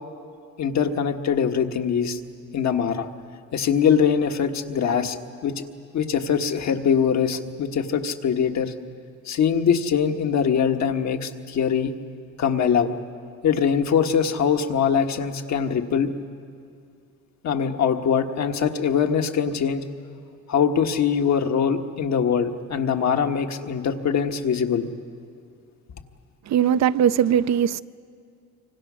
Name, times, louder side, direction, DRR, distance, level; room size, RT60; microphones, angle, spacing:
voice 1, 0.6-2.2 2.5-3.1 3.5-5.2 5.4-5.6 5.9-8.7 9.3-11.9 12.4-12.9 13.4-16.1 17.4-19.8 20.5-24.9, left 7 dB, 65° left, 1.5 m, -22 dB
voice 2, 26.5-27.8, right 9 dB, 65° right, 0.6 m, -20 dB
25.5 x 25.5 x 6.3 m
cardioid pair, 90°, 30 cm